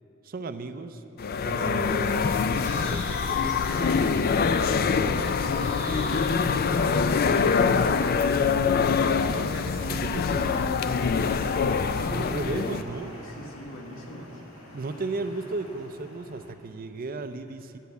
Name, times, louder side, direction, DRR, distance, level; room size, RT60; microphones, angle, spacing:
voice 1, 0.2-1.0 1.4-3.6 4.5-9.8 10.1-10.4 11.9-13.1 14.7-17.8, right 3 dB, 45° right, 10 dB, 0.5 m, -36 dB
sound 1, 1.2-12.8, left 5 dB, 45° left, 0.4 m, -24 dB
Bird, 2.5-7.9, left 1 dB, 30° left, 1.3 m, -42 dB
voice 2, 8.9-11.4 13.1-14.4, equal, 65° left, 0 dB, 1.6 m, -38 dB
sound 2, 10.0-16.5, left 1 dB, 90° left, 1.8 m, -45 dB
10.5 x 8.2 x 7.9 m, 2.9 s
head